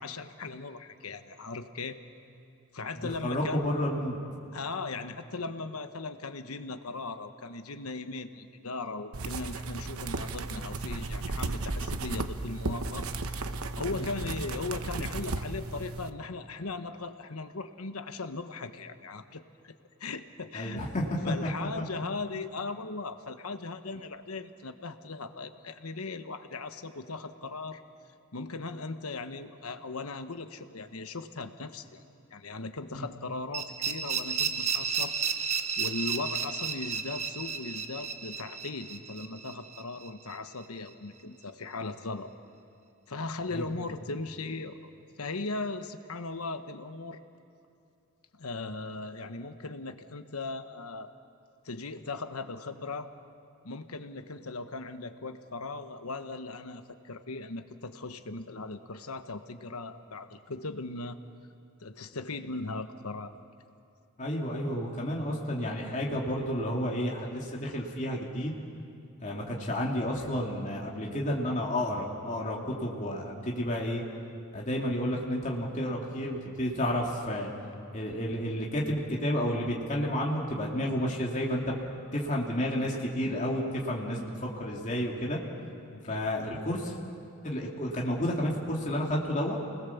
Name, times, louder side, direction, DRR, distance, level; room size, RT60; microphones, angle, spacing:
voice 1, 0.0-2.0 2.7-3.7 4.5-19.7 20.0-20.9 21.2-27.8 28.3-32.0 32.3-35.1 35.5-42.3 43.1-44.9 45.2-47.2 48.3-51.1 51.6-53.1 53.6-61.2 61.8-63.4 85.9-86.3, left 3 dB, 90° left, 9 dB, 1.2 m, -38 dB
voice 2, 3.2-4.2 13.9-14.0 20.5-21.1 32.9-33.1 43.5-43.7 64.2-68.5 69.2-74.0 74.5-77.5 77.9-81.7 82.1-85.4 86.1-86.9 87.4-89.6, equal, 35° left, -2 dB, 2.6 m, -31 dB
sound 1, 9.1-16.1, right 3 dB, 80° right, 1.0 m, -35 dB
sound 2, 33.5-40.3, right 6 dB, 30° right, 1.1 m, -33 dB
29.0 x 20.5 x 7.2 m, 2.6 s
head